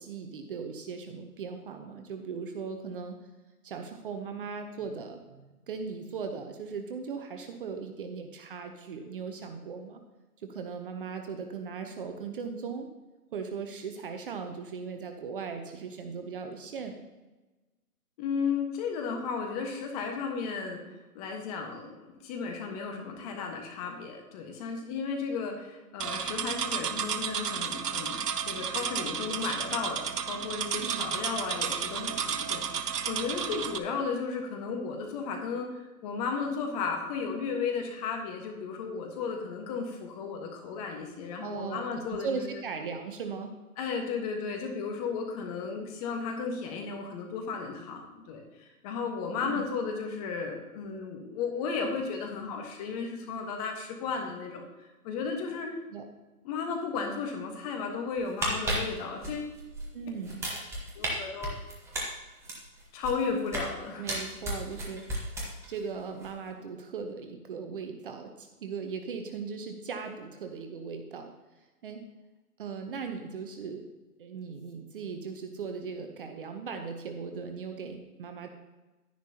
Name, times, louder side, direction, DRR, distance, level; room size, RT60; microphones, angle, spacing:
voice 1, 0.0-3.2 3.6-10.0 10.4-12.9 13.3-17.0 30.8-31.1 41.4-43.5 49.4-49.7 55.9-56.0 59.9-60.4 64.0-65.1 65.7-71.3 71.8-72.0 72.6-73.9 74.2-78.5, right 5 dB, 35° right, 5 dB, 0.8 m, -38 dB
voice 2, 18.2-20.8 21.1-28.2 28.5-42.6 43.8-55.7 56.4-59.5 60.9-61.5 62.9-64.1, left 5 dB, 25° left, 2 dB, 1.4 m, -34 dB
sound 1, 26.0-33.8, right 7 dB, 85° right, 0.9 m, -32 dB
sound 2, 58.2-59.9 60.2-61.1 61.4-63.7 64.1-65.8 66.1-66.3, right 1 dB, 5° right, 1.0 m, -34 dB
11.0 x 10.5 x 2.9 m, 1.1 s
hypercardioid pair, 145°, 46 cm